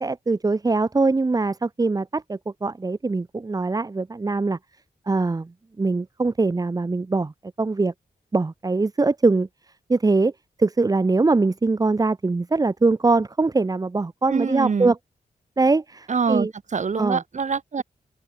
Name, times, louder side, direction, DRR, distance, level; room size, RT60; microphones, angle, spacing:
voice 1, 0.0-4.6 5.1-7.9 8.3-9.5 9.9-10.3 10.6-15.0 15.6-16.5 17.0-17.2, right 3 dB, 25° right, 1.2 m, -22 dB
voice 2, 14.3-14.9 16.1-17.8, right 5 dB, 50° right, 3.3 m, -25 dB
wide cardioid pair, 165°, 16 cm